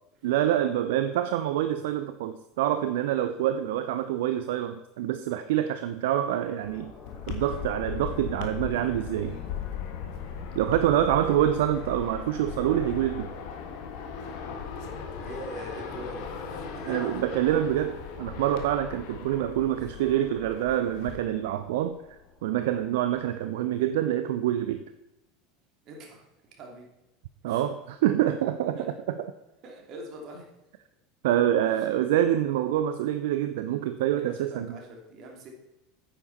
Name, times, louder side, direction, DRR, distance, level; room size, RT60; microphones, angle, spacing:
voice 1, 0.2-6.9 7.3-9.3 10.5-13.3 16.9-22.0 22.4-24.8 27.4-28.8 31.2-34.7, right 11 dB, 65° right, 10 dB, 0.5 m, -26 dB
sound 1, 6.6-23.3, left 4 dB, 40° left, 3.2 m, -50 dB
sound 2, 7.1-21.2, left 7 dB, 60° left, 1.6 m, -38 dB
voice 2, 15.2-17.1 18.5-18.6 19.8-19.9 25.8-26.9 27.5-27.6 28.8-28.9 29.6-30.5 31.6-31.9 34.2-35.5, right 1 dB, 45° right, 0 dB, 2.9 m, -43 dB
9.4 x 8.9 x 4.2 m, 0.96 s
figure-of-eight pair, 75°, 0 cm